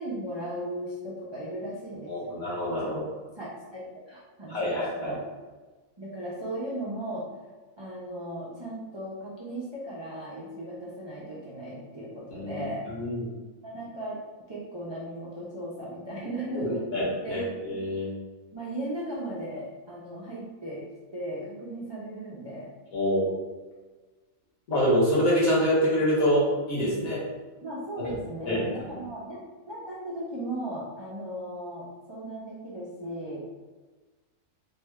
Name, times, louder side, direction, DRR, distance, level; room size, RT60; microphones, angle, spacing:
voice 1, 0.0-2.3 2.7-5.2 6.0-7.3 7.8-12.8 13.6-14.2 14.5-16.8 17.2-17.4 18.5-20.8 21.1-22.7 27.6-33.5, right 1 dB, 45° right, -7 dB, 0.3 m, -37 dB
voice 2, 2.1-3.0 4.5-5.1 12.3-13.2 16.6-18.1 22.9-23.3 24.7-27.2 28.5-28.6, equal, 75° left, -7 dB, 1.7 m, -26 dB
3.5 x 2.1 x 3.5 m, 1.3 s
omnidirectional pair, 1.5 m